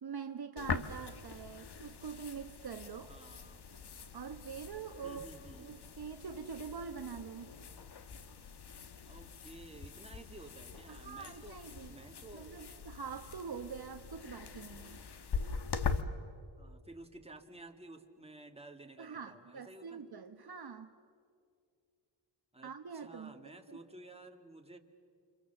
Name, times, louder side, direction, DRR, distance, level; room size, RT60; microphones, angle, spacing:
voice 1, 0.0-3.1 4.1-5.3 5.6-7.5 10.9-11.9 12.3-15.0 19.0-20.9 22.6-23.8, right 6 dB, 55° right, 7 dB, 1.2 m, -45 dB
sound 1, 0.6-16.0, left 5 dB, 55° left, 1.4 m, -43 dB
voice 2, 3.1-3.7 5.0-5.7 9.1-11.6 11.9-12.7 16.6-20.1 22.5-24.8, right 2 dB, 15° right, 3 dB, 2.2 m, -53 dB
29.0 x 26.0 x 7.2 m, 2.3 s
cardioid pair, 80°, 47 cm